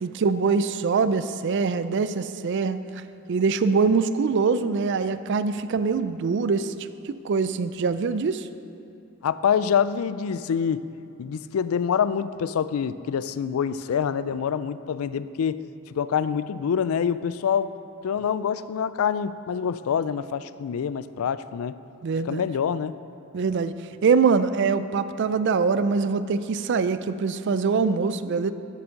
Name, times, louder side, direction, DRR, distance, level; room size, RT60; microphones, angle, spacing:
voice 1, 0.0-2.8 3.3-6.7 7.0-8.5 22.0-22.5 23.3-23.7 24.0-28.5, right 5 dB, 55° right, 13 dB, 0.4 m, -23 dB
voice 2, 9.2-10.8 11.2-15.6 15.9-17.8 18.0-21.7 22.3-23.0, left 7 dB, 85° left, 15 dB, 0.4 m, -26 dB
8.1 x 7.0 x 7.6 m, 2.7 s
head